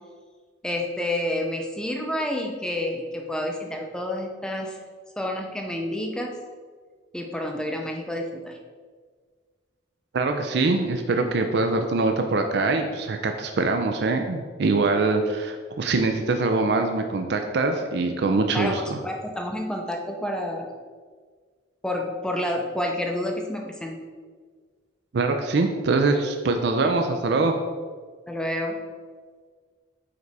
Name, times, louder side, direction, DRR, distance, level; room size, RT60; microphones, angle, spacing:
voice 1, 0.6-4.8 5.2-6.3 7.1-8.6 18.5-20.7 21.8-24.0 28.3-28.8, left 1 dB, 5° left, 2 dB, 0.5 m, -29 dB
voice 2, 10.1-19.0 25.1-27.5, right 3 dB, 60° right, 5 dB, 0.4 m, -23 dB
5.1 x 4.6 x 4.0 m, 1.5 s
head